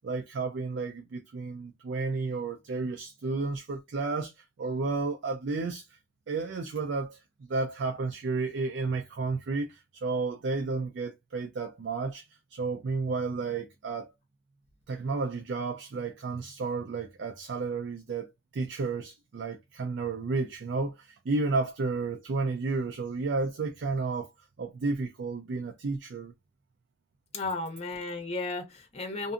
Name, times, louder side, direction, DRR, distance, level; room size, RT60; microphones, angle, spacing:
voice 1, 0.0-5.8 6.3-7.2 7.5-12.2 12.5-14.1 14.9-24.3 24.6-26.3, right 3 dB, 65° right, 0.4 m, -32 dB
voice 2, 27.3-29.3, left 3 dB, 35° left, 0.7 m, -34 dB
2.6 x 2.5 x 2.4 m
head